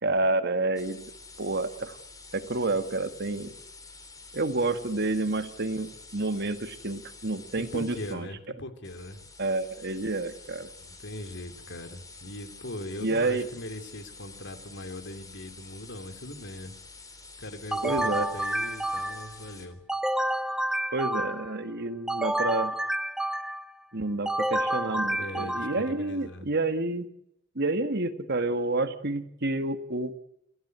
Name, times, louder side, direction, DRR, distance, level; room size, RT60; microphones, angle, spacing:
voice 1, 0.0-1.0 1.4-2.0 2.3-3.5 4.3-8.3 9.4-10.7 13.0-13.5 17.8-18.3 20.9-22.7 23.9-27.1 27.6-30.2, right 2 dB, 55° right, 10 dB, 1.9 m, -29 dB
sound 1, 0.8-8.2 8.8-19.7, left 3 dB, 20° left, 3.4 m, -48 dB
voice 2, 7.5-9.2 10.8-16.7 17.4-19.8 25.1-26.5, left 1 dB, 60° left, 8 dB, 3.2 m, -40 dB
sound 2, 17.7-19.4 19.9-21.6 22.1-23.7 24.2-26.0, right 1 dB, 5° right, 0.9 m, -29 dB
28.5 x 16.0 x 8.2 m, 0.77 s
head